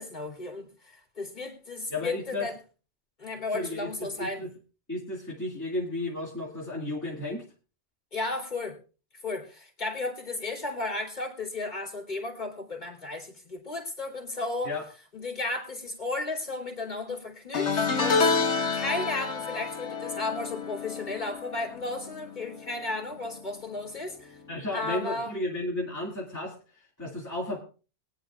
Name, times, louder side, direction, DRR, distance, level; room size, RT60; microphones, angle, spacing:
voice 1, 0.0-2.5 3.2-4.4 8.1-8.8 9.2-14.7 15.1-24.3 24.7-25.3, left 2 dB, 40° left, -1 dB, 3.1 m, -34 dB
voice 2, 1.9-2.5 3.5-4.5 4.9-7.5 14.6-14.8 24.5-27.6, left 2 dB, 15° left, -5 dB, 2.3 m, -33 dB
sound 1, 17.5-22.9 23.2-23.6 24.8-24.9, left 4 dB, 80° left, 1.6 m, -29 dB
23.0 x 9.3 x 2.4 m, 0.35 s
omnidirectional pair, 1.2 m